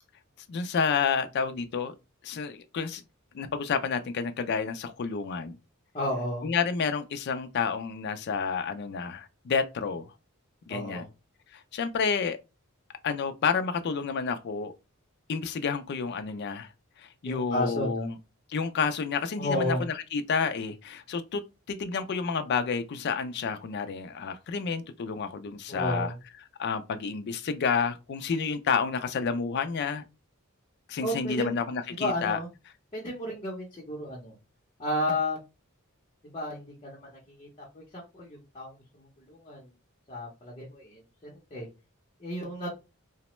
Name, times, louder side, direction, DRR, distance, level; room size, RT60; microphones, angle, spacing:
voice 1, 0.5-1.9 2.2-3.0 3.3-5.6 6.4-10.1 10.7-11.1 11.5-12.4 13.0-14.7 15.3-16.7 17.0-18.2 18.5-21.4 21.7-26.1 26.6-30.0 30.9-32.4, left 5 dB, 50° left, 0.3 m, -30 dB
voice 2, 5.9-6.5 10.7-11.1 17.2-18.1 19.4-19.8 25.7-26.2 31.0-31.6 32.0-32.5 32.9-34.3 34.8-35.4 36.3-37.1 37.4-37.5 37.7-39.7 40.1-41.7 42.2-42.7, left 1 dB, 25° left, 0.7 m, -32 dB
2.9 x 2.1 x 3.0 m
head